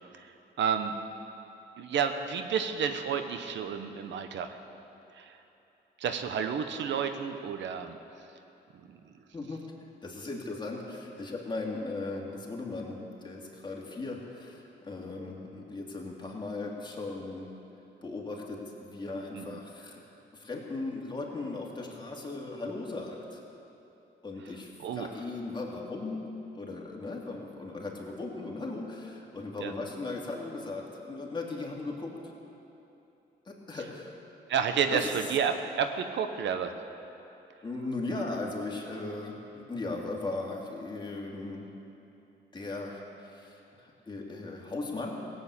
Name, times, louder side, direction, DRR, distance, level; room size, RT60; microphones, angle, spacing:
voice 1, 0.6-0.9 1.8-4.6 5.2-5.4 6.0-8.0 19.3-19.6 24.8-25.1 29.6-29.7 34.5-36.7, right 7 dB, 80° right, 7 dB, 0.9 m, -30 dB
voice 2, 10.0-17.5 18.0-20.0 20.3-23.4 24.2-26.3 26.5-32.3 33.5-34.2 34.8-35.0 37.6-41.7 42.5-45.3, left 3 dB, 25° left, -2 dB, 2.7 m, -37 dB
16.5 x 8.1 x 8.4 m, 2.9 s
cardioid pair, 85°, 19 cm